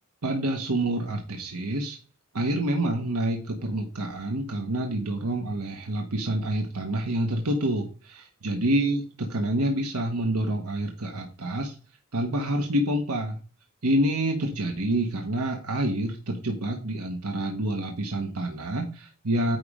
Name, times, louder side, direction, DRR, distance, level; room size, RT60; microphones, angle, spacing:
voice 1, 0.2-2.0 2.3-11.7 12.1-13.4 13.8-19.6, right 1 dB, 85° right, 3 dB, 1.3 m, -27 dB
9.5 x 3.4 x 4.9 m, 0.36 s
head